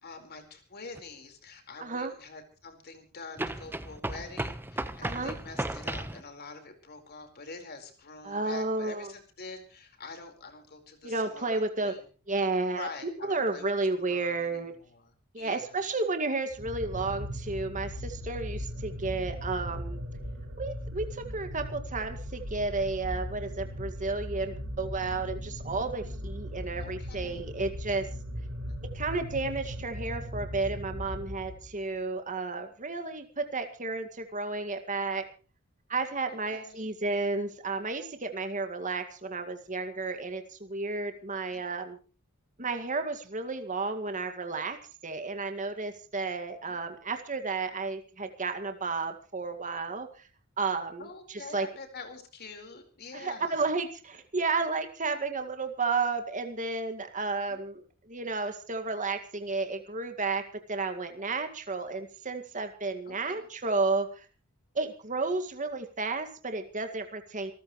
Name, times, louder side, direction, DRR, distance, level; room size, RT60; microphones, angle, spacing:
voice 1, 0.0-12.1 12.7-13.7 14.0-15.7 26.8-27.5 28.6-28.8 36.3-36.9 41.5-41.6 46.6-46.8 51.0-53.7 57.5-57.6 63.1-63.5, left 4 dB, 45° left, 5 dB, 4.5 m, -46 dB
sound 1, 0.9-1.0 3.4-6.2, right 1 dB, 10° right, 1.0 m, -35 dB
voice 2, 1.8-2.1 5.0-5.4 8.2-9.1 11.0-12.0 12.3-12.9 13.3-14.7 15.3-20.0 20.6-28.1 28.9-35.2 35.9-42.0 42.6-44.8 45.0-50.3 50.6-51.7 53.1-60.4 60.7-64.3 64.8-67.5, right 3 dB, 35° right, 7 dB, 2.0 m, -32 dB
sound 2, 16.5-31.8, equal, 70° right, 5.8 m, -38 dB
27.0 x 14.0 x 3.2 m, 0.37 s
head